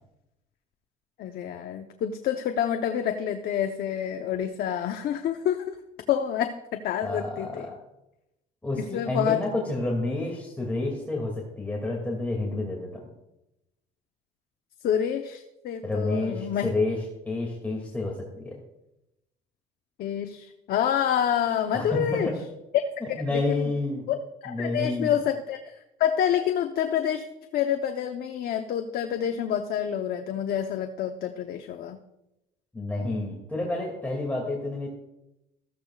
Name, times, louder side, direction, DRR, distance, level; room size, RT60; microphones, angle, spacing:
voice 1, 1.2-5.8 6.1-7.7 8.9-9.4 14.8-16.7 20.0-22.3 22.7-22.8 23.3-23.6 24.1-27.3 27.5-32.0, left 9 dB, 65° left, 6 dB, 0.9 m, -27 dB
voice 2, 7.0-7.8 8.6-13.0 15.8-18.5 21.7-22.3 23.0-24.1 24.5-25.1 32.7-34.9, left 2 dB, 10° left, -2 dB, 2.3 m, -29 dB
14.5 x 14.0 x 2.4 m, 0.90 s
cardioid pair, 110°, 17 cm